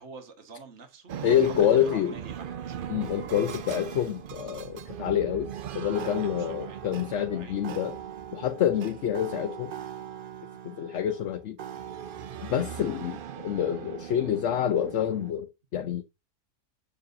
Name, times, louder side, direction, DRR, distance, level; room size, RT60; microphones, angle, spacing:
voice 1, 0.0-2.8 6.2-7.6 12.1-12.3, right 4 dB, 50° right, 1.8 m, -47 dB
sound 1, 1.1-15.3, right 9 dB, 75° right, 0.5 m, -39 dB
voice 2, 1.2-2.1 2.9-8.0 8.3-9.7 10.6-11.6 12.5-16.0, left 10 dB, 60° left, 0.9 m, -27 dB
7.2 x 6.7 x 2.7 m
omnidirectional pair, 1.6 m